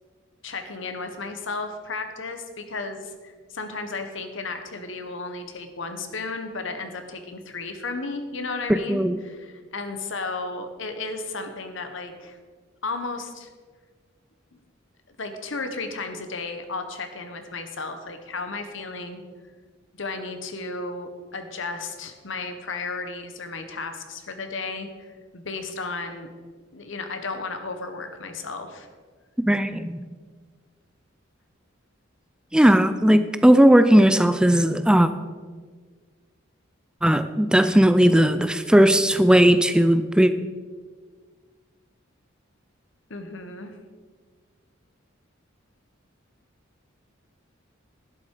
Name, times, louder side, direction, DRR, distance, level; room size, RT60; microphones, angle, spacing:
voice 1, 0.4-12.4 12.8-13.5 14.5-14.6 15.1-19.2 20.0-26.3 26.7-28.9 43.1-43.8, left 3 dB, 70° left, 7 dB, 1.4 m, -34 dB
voice 2, 8.7-9.2 29.5-30.0 32.5-35.1 37.0-40.3, equal, 5° right, 11 dB, 0.4 m, -17 dB
11.5 x 11.0 x 4.9 m, 1.5 s
head